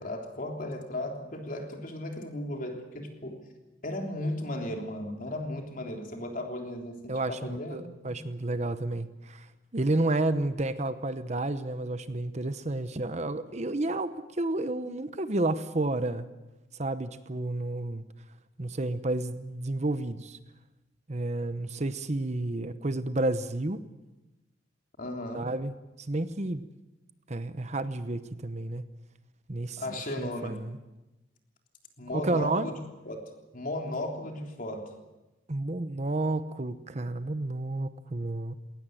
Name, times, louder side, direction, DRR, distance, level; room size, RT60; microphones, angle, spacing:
voice 1, 0.0-3.4 3.8-8.1 25.0-25.5 29.8-30.6 32.0-32.8 33.1-34.9, left 1 dB, 45° left, 3 dB, 3.5 m, -36 dB
voice 2, 7.1-9.5 9.7-16.3 16.8-18.0 18.6-20.4 21.1-23.8 25.3-26.7 27.3-28.9 29.5-29.8 30.2-30.8 32.1-32.7 35.5-38.5, right 2 dB, 35° right, 12 dB, 0.9 m, -31 dB
20.5 x 19.0 x 9.1 m, 1.0 s
head